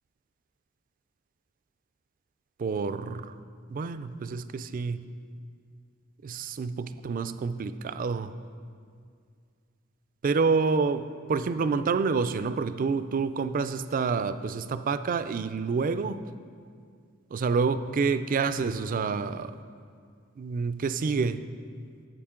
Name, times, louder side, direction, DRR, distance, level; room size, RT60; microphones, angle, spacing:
voice 1, 2.6-3.3 3.7-5.1 6.2-8.3 10.2-16.2 17.3-19.6 20.4-21.4, right 4 dB, 40° right, 12 dB, 0.3 m, -28 dB
11.5 x 7.8 x 3.7 m, 2.2 s
head